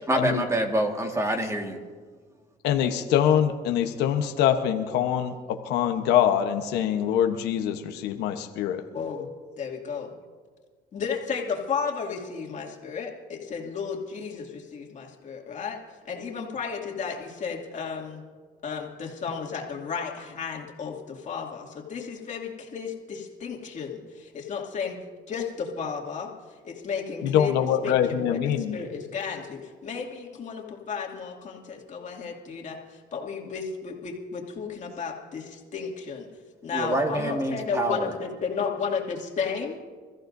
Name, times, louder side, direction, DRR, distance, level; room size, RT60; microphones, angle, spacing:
voice 1, 0.1-1.8 36.7-38.1, right 1 dB, 15° right, 3 dB, 1.8 m, -26 dB
voice 2, 2.6-8.8 27.2-28.8, left 9 dB, 90° left, 5 dB, 1.0 m, -24 dB
voice 3, 8.9-9.3 9.6-10.1 10.9-15.8 16.0-18.3 18.6-25.0 25.3-26.3 26.6-27.5 27.8-36.3 36.6-39.8, left 6 dB, 45° left, 0 dB, 2.4 m, -33 dB
27.0 x 14.5 x 2.7 m, 1.5 s
cardioid pair, 110°, 17 cm